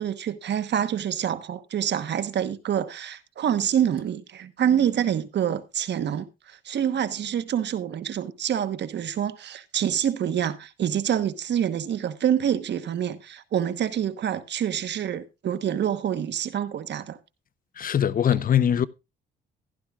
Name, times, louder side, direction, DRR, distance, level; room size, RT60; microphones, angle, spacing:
voice 1, 0.0-17.2, right 9 dB, 60° right, 1.2 m, -26 dB
voice 2, 17.8-18.9, left 9 dB, 45° left, 0.7 m, -21 dB
15.5 x 11.5 x 2.4 m
cardioid pair, 90°, 20 cm